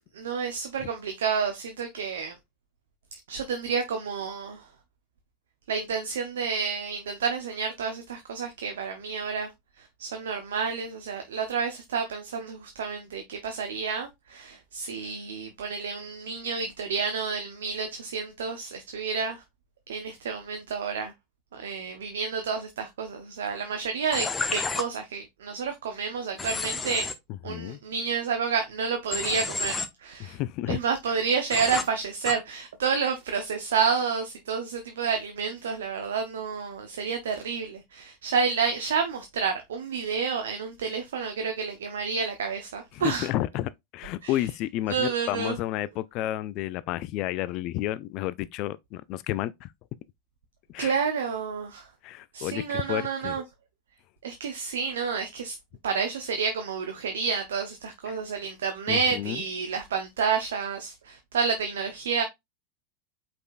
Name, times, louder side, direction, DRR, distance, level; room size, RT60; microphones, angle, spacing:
voice 1, 0.1-2.4 3.3-4.7 5.7-9.5 9.8-19.4 19.9-21.1 21.5-27.0 27.4-30.4 30.7-43.3 44.2-44.4 44.9-45.6 50.8-51.9 52.3-53.4 54.2-55.6 55.8-62.2, right 6 dB, 75° right, 0.7 m, -30 dB
Human voice / Train, 24.1-24.8 26.4-27.1 29.1-29.9 31.5-31.8 32.2-32.3, left 4 dB, 15° left, 0.7 m, -30 dB
voice 2, 27.5-27.8 30.2-30.8 42.9-49.7 50.7-50.9 52.0-53.4 58.1-58.2 58.9-59.4, left 14 dB, 50° left, 0.3 m, -31 dB
5.1 x 4.3 x 2.4 m
hypercardioid pair, 90°, 0 cm